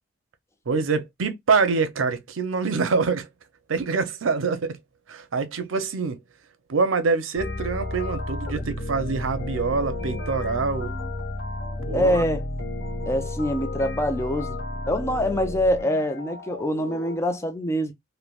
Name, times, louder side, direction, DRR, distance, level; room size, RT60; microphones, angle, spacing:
voice 1, 0.7-3.3 3.7-4.8 5.1-6.2 6.7-10.9 11.9-12.2, right 4 dB, 85° right, 0.6 m, -25 dB
sound 1, 7.4-17.2, left 2 dB, 60° left, 1.0 m, -32 dB
voice 2, 11.9-12.4 13.0-14.6 14.9-17.9, equal, 15° left, 0.4 m, -24 dB
3.2 x 2.1 x 2.3 m
head